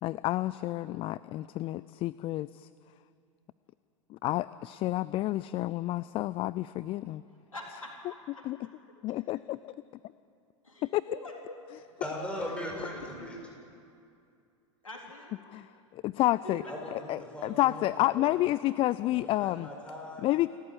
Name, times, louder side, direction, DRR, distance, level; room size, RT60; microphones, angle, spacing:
voice 1, 0.0-2.7 4.1-7.2 8.5-8.6 9.0-9.6 10.9-11.0 15.5-15.6 15.9-16.6 17.1-19.7 20.2-20.5, left 16 dB, 35° left, 17 dB, 0.4 m, -29 dB
voice 2, 7.3-8.7 10.6-11.9 12.6-13.3 14.8-15.4 16.1-16.8, left 2 dB, 90° left, 0 dB, 3.8 m, -45 dB
voice 3, 12.0-13.4 16.6-16.9 17.3-18.3 19.0-20.3, left 1 dB, 5° left, -1 dB, 7.6 m, -39 dB
29.0 x 14.0 x 8.3 m, 2.5 s
figure-of-eight pair, 90°, 17 cm